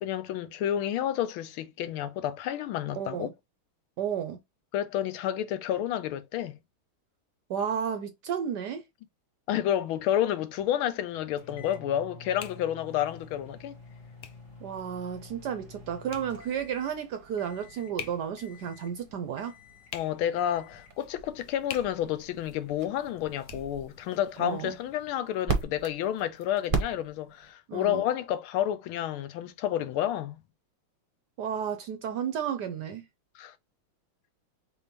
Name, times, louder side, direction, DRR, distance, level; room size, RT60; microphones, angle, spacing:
voice 1, 0.0-3.3 4.7-6.6 9.5-13.8 19.9-30.4 33.3-33.5, left 11 dB, 90° left, 1.5 m, -30 dB
voice 2, 2.9-3.3 4.0-4.4 7.5-8.8 14.6-19.6 24.4-24.8 27.7-28.0 31.4-33.0, right 8 dB, 75° right, 1.0 m, -32 dB
sound 1, 9.9-25.1, left 10 dB, 70° left, 1.0 m, -50 dB
sound 2, 11.4-17.0 17.4-18.0 18.4-19.0 19.4-20.0 20.4-21.0, left 4 dB, 30° left, 1.0 m, -50 dB
sound 3, 13.1-27.5, right 4 dB, 45° right, 0.7 m, -40 dB
4.3 x 3.6 x 2.9 m
omnidirectional pair, 2.3 m